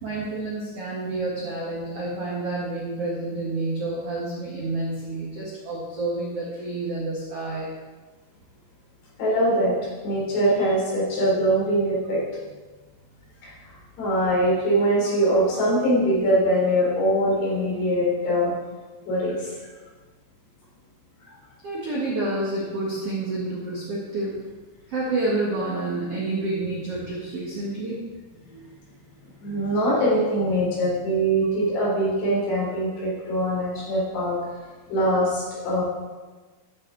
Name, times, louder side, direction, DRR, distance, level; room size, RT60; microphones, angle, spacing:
voice 1, 0.0-7.7 21.6-24.4 24.9-28.0 28.3-28.4, right 2 dB, 65° right, -5 dB, 1.5 m, -29 dB
voice 2, 9.2-9.8 10.0-12.2 13.4-18.5 19.1-19.6 28.5-28.6 29.4-34.4 34.9-35.8, right 1 dB, 65° left, -6 dB, 5.4 m, -22 dB
13.5 x 7.0 x 3.9 m, 1.3 s
omnidirectional pair, 5.2 m